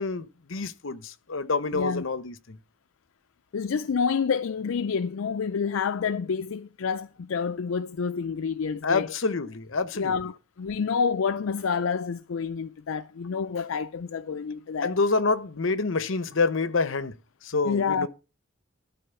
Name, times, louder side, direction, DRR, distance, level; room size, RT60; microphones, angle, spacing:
voice 1, 0.0-2.6 8.8-10.1 14.8-17.1 17.4-18.1, left 3 dB, 75° left, 0.9 m, -27 dB
voice 2, 1.7-2.0 3.5-9.1 9.9-15.0 17.6-18.1, left 5 dB, 90° left, 0.4 m, -28 dB
12.5 x 4.4 x 6.9 m
head